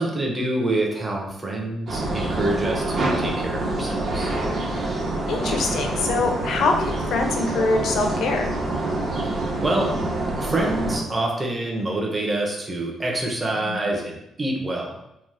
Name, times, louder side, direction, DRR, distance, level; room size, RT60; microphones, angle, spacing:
voice 1, 0.0-4.3 9.2-9.3 9.6-10.0 10.4-14.9, right 1 dB, 25° right, -1 dB, 0.6 m, -26 dB
sound 1, 1.9-11.0, right 2 dB, 55° right, 0.7 m, -26 dB
voice 2, 5.3-8.5 13.7-13.8, left 3 dB, 70° left, 3 dB, 0.5 m, -24 dB
2.8 x 2.0 x 3.2 m, 0.85 s
cardioid pair, 90°, 0 cm